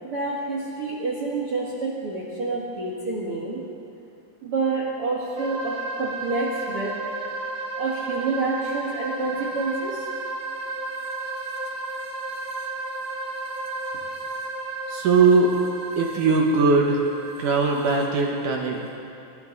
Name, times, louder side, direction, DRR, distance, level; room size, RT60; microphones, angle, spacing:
voice 1, 0.0-3.6 4.4-7.0 7.8-10.1, right 3 dB, 45° right, -5 dB, 1.9 m, -28 dB
sound 1, 5.4-18.9, right 2 dB, 25° right, 2.5 m, -33 dB
voice 2, 14.9-15.6 16.0-17.0 17.4-18.9, right 4 dB, 65° right, 0 dB, 2.1 m, -20 dB
25.0 x 14.5 x 4.0 m, 2.6 s
omnidirectional pair, 5.2 m